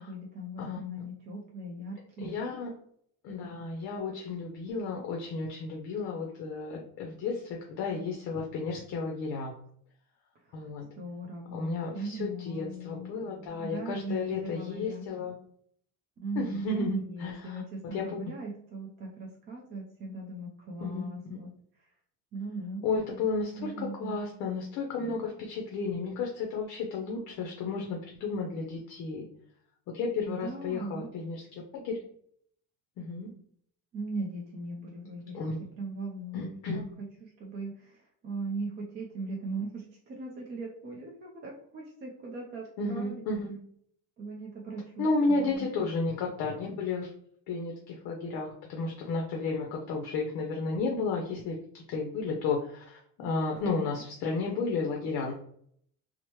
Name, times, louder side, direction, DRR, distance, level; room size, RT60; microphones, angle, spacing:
voice 1, 0.0-2.3 10.5-10.7 11.0-13.1 13.6-15.1 16.2-21.5 22.3-22.8 23.6-24.2 30.3-31.1 33.9-35.5 35.8-43.2 44.2-45.7, right 2 dB, 30° right, -2 dB, 0.4 m, -39 dB
voice 2, 2.2-2.7 3.2-9.5 10.5-10.9 11.5-15.4 16.3-17.6 17.9-18.2 20.8-21.4 22.8-29.3 29.9-32.0 33.0-33.3 35.3-35.6 36.3-36.8 42.8-43.5 45.0-47.1 47.5-55.3, left 3 dB, 55° left, 0 dB, 0.6 m, -33 dB
2.9 x 2.1 x 3.0 m, 0.62 s
cardioid pair, 165°, 35 cm